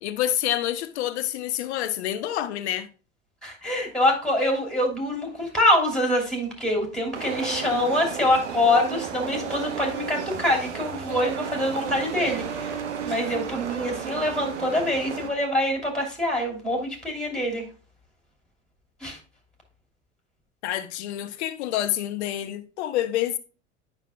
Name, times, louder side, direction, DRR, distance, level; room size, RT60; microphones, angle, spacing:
voice 1, 0.0-2.9 20.6-23.4, left 12 dB, 60° left, 0.8 m, -28 dB
voice 2, 3.4-17.6 19.0-19.2, left 1 dB, ahead, 2.7 m, -25 dB
sound 1, 7.1-15.3, right 7 dB, 70° right, 1.0 m, -33 dB
9.1 x 5.8 x 2.2 m
figure-of-eight pair, 75°, 37 cm